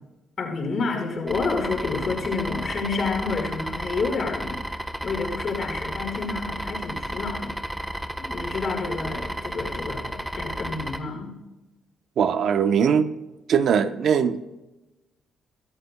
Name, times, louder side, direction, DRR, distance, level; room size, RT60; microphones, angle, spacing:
voice 1, 0.4-4.6 5.0-7.7 8.2-11.4, left 4 dB, 50° left, 5.1 m, -29 dB
sound 1, 1.3-11.0, right 1 dB, 5° right, 1.3 m, -33 dB
voice 2, 12.2-13.1 13.5-14.4, right 7 dB, 65° right, 1.0 m, -20 dB
23.5 x 13.5 x 2.4 m
cardioid pair, 90°, 0 cm